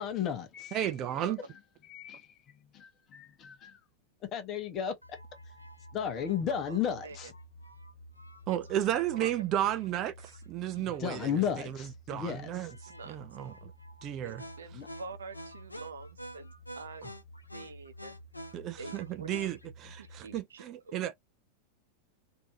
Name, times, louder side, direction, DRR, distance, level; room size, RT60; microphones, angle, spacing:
voice 1, 0.0-0.9 1.2-3.8 4.2-5.2 5.9-7.3 10.7-12.7 14.7-14.9, left 8 dB, 30° left, 1.1 m, -35 dB
voice 2, 0.7-1.4 8.5-11.3 12.1-12.7 13.0-13.7 14.0-14.4 18.5-21.1, right 12 dB, 35° right, 0.5 m, -33 dB
sound 1, 5.0-20.4, equal, 85° left, 0.7 m, -49 dB
voice 3, 14.2-16.1 16.3-16.5 16.8-17.1 17.5-18.2 18.8-19.3 20.2-21.0, right 4 dB, 70° right, 0.8 m, -46 dB
3.3 x 2.8 x 2.8 m
figure-of-eight pair, 90°, 0 cm